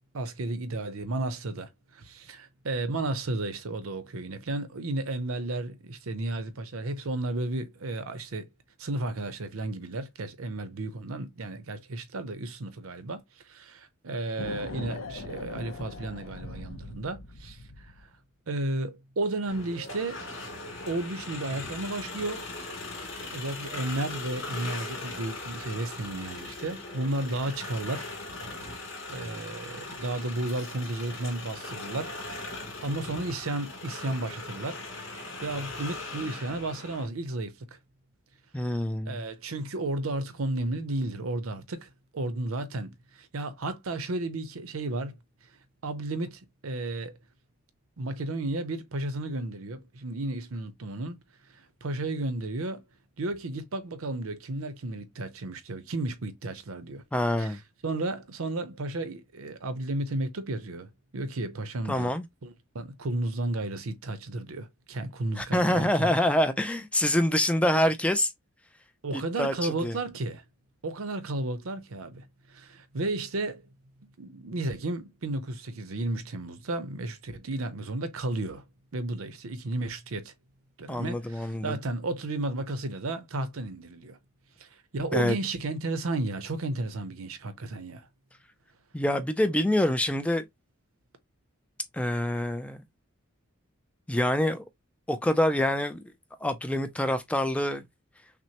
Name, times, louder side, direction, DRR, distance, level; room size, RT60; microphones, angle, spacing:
voice 1, 0.1-8.5 8.8-13.2 13.5-17.9 18.5-20.3 20.9-22.4 23.3-28.1 29.1-34.8 35.1-37.5 39.1-45.2 45.8-47.1 48.0-51.2 51.8-52.8 53.2-57.0 57.4-62.1 62.4-66.1 67.7-67.8 69.0-70.4 70.8-73.6 74.2-78.6 78.9-80.3 80.8-84.2 84.6-84.7 84.9-88.1, right 2 dB, 80° right, 0.7 m, -33 dB
sound 1, 14.4-18.1, left 3 dB, 80° left, 0.6 m, -40 dB
sound 2, 19.5-37.0, left 2 dB, 60° left, 2.6 m, -39 dB
voice 2, 38.5-39.2 57.1-57.6 61.9-62.2 65.4-68.3 69.1-70.0 80.9-81.8 85.1-85.4 88.9-90.4 91.9-92.8 94.1-94.6 95.1-96.0 96.4-97.8, left 1 dB, 5° left, 0.3 m, -26 dB
5.9 x 2.1 x 2.9 m
head